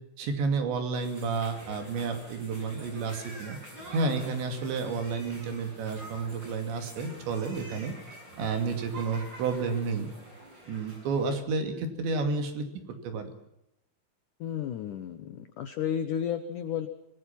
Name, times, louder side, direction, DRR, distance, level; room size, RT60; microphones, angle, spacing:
voice 1, 0.2-3.6 3.9-7.9 8.4-10.1 10.7-12.7 13.0-13.3, right 4 dB, 75° right, 6 dB, 4.8 m, -31 dB
sound 1, 0.9-11.3, right 1 dB, 25° right, 7.3 m, -47 dB
voice 2, 14.4-16.9, left 9 dB, 75° left, 9 dB, 1.8 m, -32 dB
26.0 x 19.0 x 6.0 m, 0.81 s
omnidirectional pair, 5.3 m